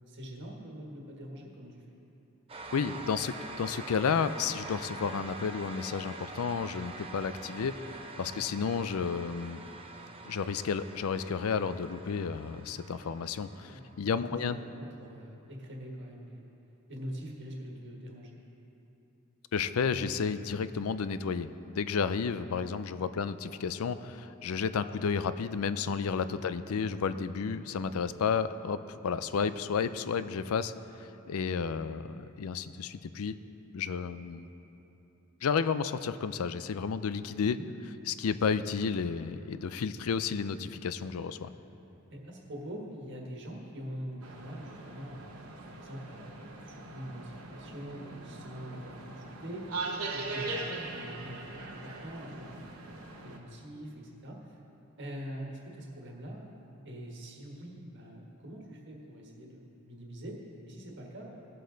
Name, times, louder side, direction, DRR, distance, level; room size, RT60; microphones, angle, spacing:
voice 1, 0.1-1.9 8.2-8.4 13.6-13.8 14.2-14.3 14.6-16.4 16.9-18.4 22.9-23.1 37.5-37.7 40.6-40.7 42.1-45.3 45.7-53.0 53.2-54.6 55.0-56.4 56.8-60.4 60.7-61.4, equal, 55° right, -1 dB, 1.6 m, -44 dB
sound 1, 2.5-14.0, right 3 dB, 25° right, 0.7 m, -45 dB
voice 2, 2.7-9.6 10.3-14.6 19.5-33.4 33.7-34.5 35.4-37.6 38.1-41.5, left 6 dB, 80° left, 13 dB, 0.4 m, -32 dB
sound 2, 44.2-53.4, right 3 dB, 90° right, 1.2 m, -41 dB
17.5 x 7.7 x 3.9 m, 3.0 s
head